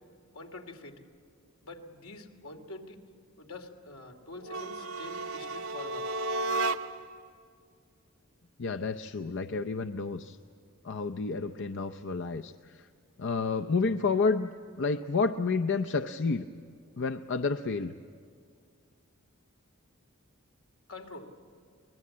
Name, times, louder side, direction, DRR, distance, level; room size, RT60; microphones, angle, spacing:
voice 1, 0.3-1.0 1.6-3.0 3.4-6.1 20.9-21.3, left 2 dB, 80° left, 3 dB, 2.8 m, -46 dB
sound 1, 4.4-7.2, right 2 dB, 65° right, 0.8 m, -33 dB
voice 2, 8.6-10.4 10.8-12.5 13.2-14.5 14.8-16.5 17.0-17.9, left 4 dB, 60° left, 6 dB, 0.7 m, -30 dB
24.5 x 20.5 x 8.6 m, 2.3 s
head